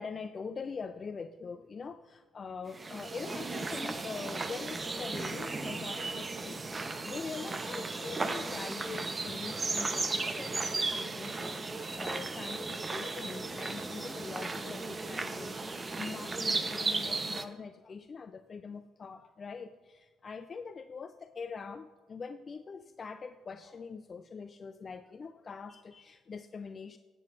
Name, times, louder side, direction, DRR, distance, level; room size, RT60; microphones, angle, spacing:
voice 1, 0.0-27.0, left 5 dB, 40° left, 10 dB, 0.4 m, -43 dB
sound 1, 2.7-17.4, right 3 dB, 30° right, 0.7 m, -35 dB
14.0 x 7.6 x 2.5 m, 1.3 s
supercardioid pair, 60°, 0 cm